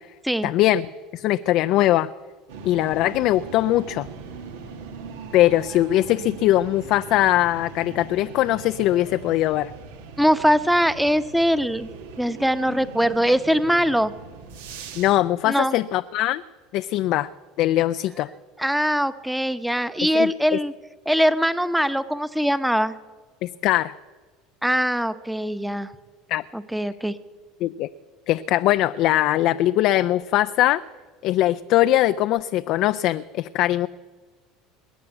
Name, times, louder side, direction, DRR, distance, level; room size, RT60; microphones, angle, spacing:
voice 1, 0.4-0.9 1.1-2.1 2.6-4.1 5.3-9.7 14.9-16.4 16.7-17.3 17.6-18.3 20.1-20.6 23.4-23.9 26.3-26.4 27.6-27.9 28.3-30.8 31.2-33.9, left 14 dB, 60° left, 12 dB, 0.4 m, -21 dB
sound 1, 2.5-15.2, right 5 dB, 75° right, 1.5 m, -40 dB
voice 2, 10.2-11.9 12.2-14.1 15.4-15.8 18.6-20.7 21.1-22.9 24.6-25.9 26.5-27.1, equal, 5° right, 13 dB, 0.9 m, -22 dB
20.5 x 8.5 x 8.1 m, 1.4 s
hypercardioid pair, 80°, 0 cm